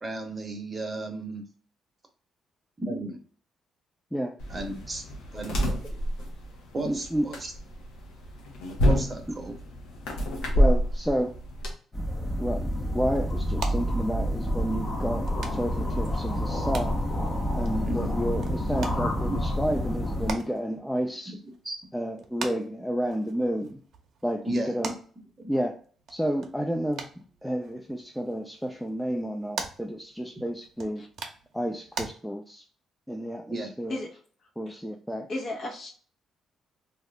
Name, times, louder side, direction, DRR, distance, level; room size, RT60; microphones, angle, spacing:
voice 1, 0.0-1.4 2.8-3.2 4.5-5.0 5.3-5.7 6.7-7.4 8.8-9.6 17.9-18.3 19.3-19.4 21.3-21.4 21.6-21.8 24.4-24.9 25.4-25.5 33.5-33.7, right 2 dB, 30° right, 3 dB, 0.8 m, -34 dB
sound 1, 4.4-11.7, equal, 90° left, 1.0 m, -28 dB
voice 2, 6.9-7.3 10.6-11.3 12.4-12.7 12.9-17.0 17.5-21.3 21.9-23.8 24.2-24.9 25.5-25.7 26.1-31.0 31.5-32.6 33.1-34.0 34.6-35.3, equal, 5° left, 2 dB, 0.4 m, -30 dB
sound 2, 11.9-20.3, equal, 30° left, 0.8 m, -28 dB
sound 3, 12.2-32.1, right 5 dB, 65° right, 0.6 m, -44 dB
voice 3, 35.3-35.9, left 2 dB, 55° left, 1 dB, 1.0 m, -34 dB
2.7 x 2.4 x 3.2 m, 0.43 s
cardioid pair, 90°, 0 cm